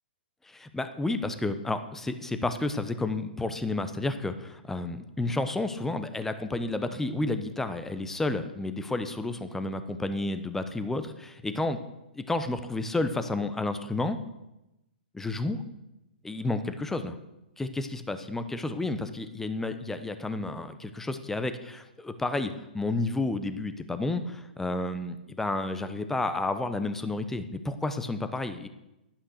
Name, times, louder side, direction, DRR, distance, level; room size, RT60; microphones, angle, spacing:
voice 1, 0.5-11.8 12.2-14.2 15.1-15.6 16.2-17.2 17.6-28.7, left 2 dB, 5° left, 10 dB, 0.9 m, -31 dB
11.5 x 8.8 x 6.6 m, 0.92 s
hypercardioid pair, 125°, 5 cm